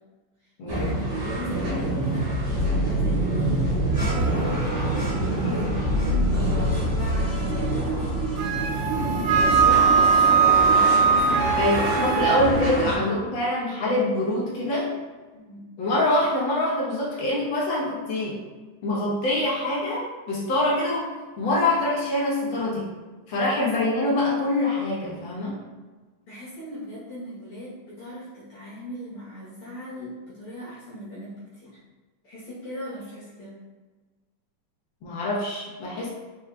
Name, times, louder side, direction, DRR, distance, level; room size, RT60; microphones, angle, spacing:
voice 1, 0.4-8.5 8.9-11.9 12.7-13.1 15.3-15.7 23.6-23.7 26.3-31.8 32.2-33.5, equal, 60° left, -9 dB, 1.6 m, -38 dB
sound 1, 0.7-12.9, right 1 dB, 45° right, 1.6 m, -25 dB
Wind instrument woodwind instrument, 8.4-12.5, right 6 dB, 85° right, 2.1 m, -20 dB
voice 2, 11.6-15.0 15.8-18.4 18.8-22.9 23.3-25.6 35.0-36.1, left 1 dB, 90° left, -6 dB, 1.0 m, -25 dB
4.7 x 4.6 x 2.3 m, 1.3 s
omnidirectional pair, 3.6 m